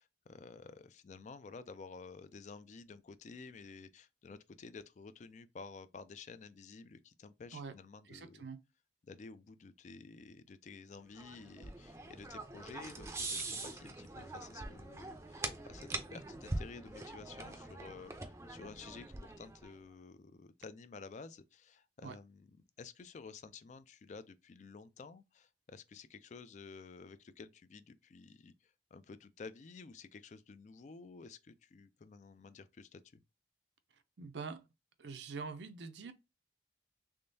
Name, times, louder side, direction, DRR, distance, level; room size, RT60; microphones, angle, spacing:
voice 1, 0.0-8.5 9.0-33.2, left 4 dB, 40° left, 0.3 m, -52 dB
voice 2, 8.1-8.6 22.0-22.2 34.2-34.6 35.0-36.1, right 5 dB, 75° right, 0.5 m, -44 dB
sound 1, 11.2-19.7, right 2 dB, 15° right, 0.5 m, -43 dB
3.6 x 3.3 x 2.6 m
head